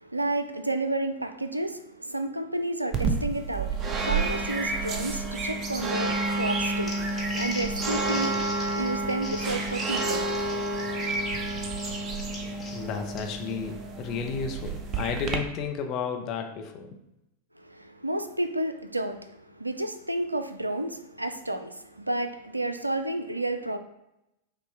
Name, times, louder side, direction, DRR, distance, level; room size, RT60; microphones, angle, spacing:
voice 1, 0.0-10.6 17.7-23.8, right 1 dB, 85° right, 9 dB, 0.3 m, -31 dB
sound 1, 2.9-15.4, right 3 dB, 30° right, 0.5 m, -30 dB
Crumpling crinkling, 6.6-13.5, left 3 dB, 15° left, 0.9 m, -41 dB
voice 2, 12.7-16.9, left 5 dB, 35° left, 3 dB, 0.5 m, -32 dB
5.3 x 2.1 x 3.4 m, 0.86 s
figure-of-eight pair, 90°, 0 cm